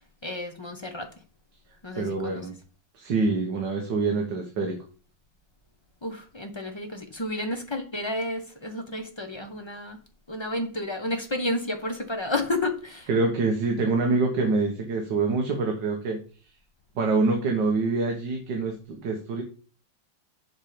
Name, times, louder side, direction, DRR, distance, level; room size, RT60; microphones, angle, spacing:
voice 1, 0.2-1.1 1.8-2.5 6.0-10.0 10.3-13.1, left 1 dB, 35° left, 0.4 m, -31 dB
voice 2, 2.0-2.5 3.0-4.8 13.1-16.2 17.0-19.4, right 3 dB, 65° right, 1.9 m, -25 dB
7.3 x 6.9 x 5.1 m
omnidirectional pair, 2.2 m